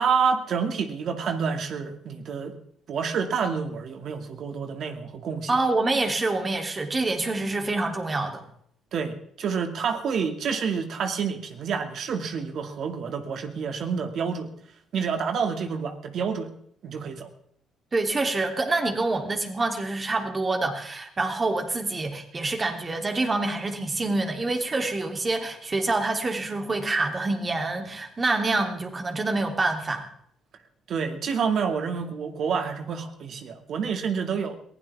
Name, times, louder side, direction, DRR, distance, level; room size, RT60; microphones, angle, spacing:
voice 1, 0.0-2.5 2.9-5.5 8.9-14.5 14.9-16.6 16.8-17.3 30.9-34.6, right 6 dB, 60° right, 6 dB, 2.4 m, -28 dB
voice 2, 5.5-8.4 17.9-30.1, right 2 dB, 30° right, 4 dB, 3.3 m, -26 dB
22.5 x 16.0 x 3.6 m, 0.66 s
supercardioid pair, 75°, 0 cm